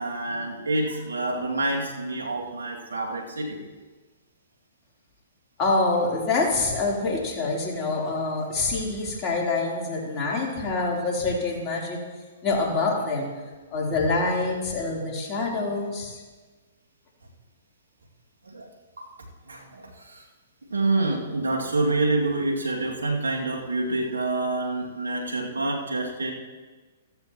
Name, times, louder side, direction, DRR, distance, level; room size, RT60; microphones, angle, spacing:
voice 1, 0.0-3.6 18.5-18.7 19.0-19.1 19.5-20.2 20.7-26.3, right 2 dB, 85° right, 1 dB, 2.3 m, -27 dB
voice 2, 5.6-12.0 12.4-13.3 13.7-16.2, left 3 dB, 30° left, -3 dB, 3.5 m, -26 dB
15.0 x 14.0 x 3.0 m, 1.3 s
hypercardioid pair, 125°, 0 cm